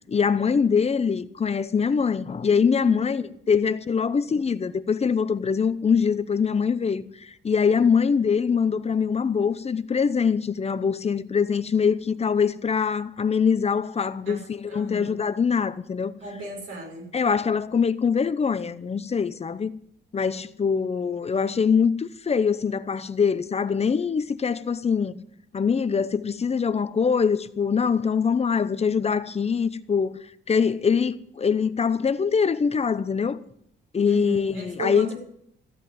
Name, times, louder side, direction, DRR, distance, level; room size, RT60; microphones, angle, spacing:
voice 1, 0.1-16.1 17.1-19.7 20.1-25.2 25.5-33.4 33.9-35.1, left 6 dB, 30° left, 0.8 m, -23 dB
voice 2, 14.7-15.2 16.2-17.0 34.0-35.1, right 1 dB, 85° right, 5.9 m, -35 dB
14.5 x 8.2 x 9.1 m
cardioid pair, 90°, 20 cm